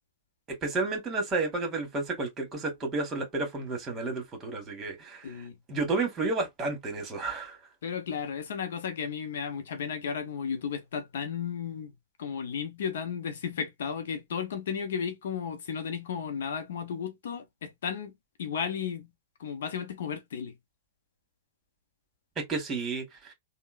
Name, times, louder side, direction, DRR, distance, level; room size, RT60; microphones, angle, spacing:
voice 1, 0.6-5.3 5.7-7.6 22.4-23.3, right 3 dB, 25° right, 1.5 m, -31 dB
voice 2, 7.8-11.9 12.2-18.1 18.4-19.1 19.4-20.5, left 7 dB, 70° left, 0.6 m, -34 dB
3.5 x 2.0 x 2.4 m
hypercardioid pair, 110°, 0 cm